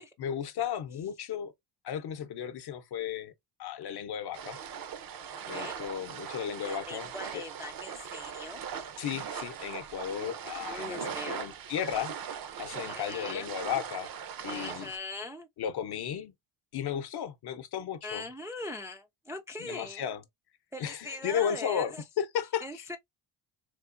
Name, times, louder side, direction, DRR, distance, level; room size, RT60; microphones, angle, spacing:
voice 1, 0.0-1.5 1.8-3.3 3.6-4.6 5.4-7.1 7.3-7.4 9.0-12.1 12.6-14.1 14.4-14.9 15.6-16.3 16.7-18.2 19.6-20.2 20.8-22.8, left 9 dB, 55° left, 0.7 m, -34 dB
sound 1, 4.3-15.0, right 8 dB, 50° right, 0.6 m, -40 dB
voice 2, 6.6-8.6 10.7-11.5 12.9-13.5 14.5-15.5 18.0-20.1 20.7-22.0 22.6-23.0, left 2 dB, 5° right, 0.3 m, -41 dB
3.6 x 2.8 x 2.5 m
cardioid pair, 110°, 47 cm